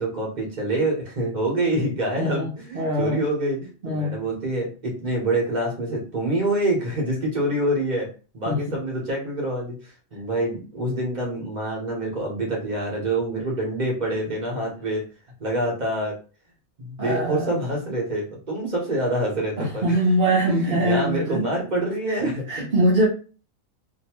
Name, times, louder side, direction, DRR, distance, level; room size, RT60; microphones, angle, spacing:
voice 1, 0.0-8.1 8.3-15.0 15.4-16.2 16.8-20.0 20.5-22.7, right 1 dB, 35° right, -1 dB, 1.2 m, -26 dB
voice 2, 2.2-3.2 3.8-4.1 8.5-8.6 17.0-17.5 19.6-21.4 22.1-22.2 22.5-23.1, right 1 dB, 50° right, -4 dB, 0.9 m, -22 dB
2.9 x 2.6 x 3.0 m, 0.37 s
omnidirectional pair, 1.5 m